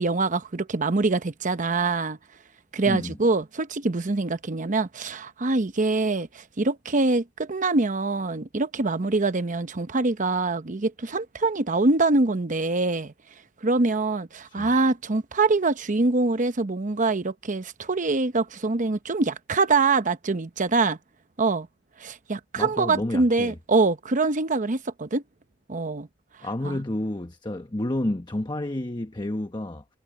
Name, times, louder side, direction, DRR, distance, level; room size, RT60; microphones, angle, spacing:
voice 1, 0.0-2.2 2.7-13.1 13.6-21.0 21.4-21.7 22.0-25.2 25.7-26.1 26.6-26.8, right 3 dB, 40° right, 0.9 m, -24 dB
voice 2, 2.9-3.2 14.4-14.7 22.6-23.6 26.4-29.8, left 1 dB, 25° left, 1.0 m, -30 dB
head